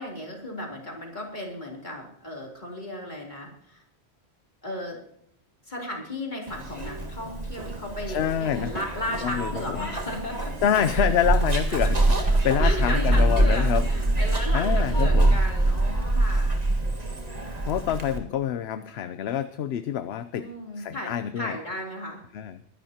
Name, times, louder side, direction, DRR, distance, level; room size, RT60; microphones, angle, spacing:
voice 1, 0.0-3.8 4.6-5.0 5.7-10.5 10.9-11.1 11.8-11.9 12.3-16.7 20.4-22.2, left 1 dB, 45° left, 0 dB, 3.4 m, -35 dB
Zipper (clothing), 6.5-18.2, right 2 dB, 40° right, 1.8 m, -24 dB
voice 2, 8.1-8.8 9.2-9.9 10.6-13.9 14.5-15.4 17.6-20.5 20.8-21.6 22.3-22.6, left 9 dB, 75° left, 12 dB, 0.9 m, -27 dB
21.5 x 11.0 x 2.9 m, 0.69 s
omnidirectional pair, 1.1 m